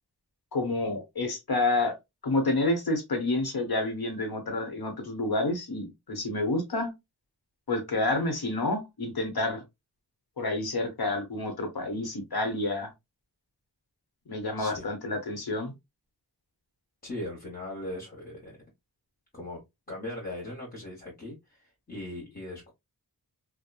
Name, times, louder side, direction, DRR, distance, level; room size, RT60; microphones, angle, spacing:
voice 1, 0.5-2.0 2.2-6.9 7.7-9.6 10.4-12.9 14.3-15.7, left 2 dB, 65° left, 1.1 m, -29 dB
voice 2, 17.0-18.6 19.3-19.6 19.9-22.7, left 1 dB, 25° left, 1.1 m, -39 dB
2.9 x 2.2 x 2.3 m
wide cardioid pair, 65°, 40 cm